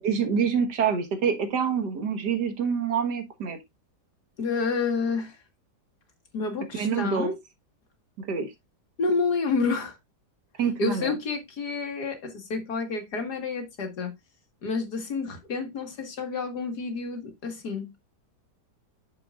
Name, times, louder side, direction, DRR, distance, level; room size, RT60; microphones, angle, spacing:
voice 1, 0.0-3.6 6.7-7.3 8.2-8.5 10.6-11.1, right 6 dB, 75° right, 2.0 m, -26 dB
voice 2, 4.4-5.3 6.3-7.3 9.0-10.0 10.8-14.1 14.6-18.0, left 4 dB, 65° left, 2.3 m, -29 dB
8.7 x 7.0 x 2.4 m
omnidirectional pair, 1.8 m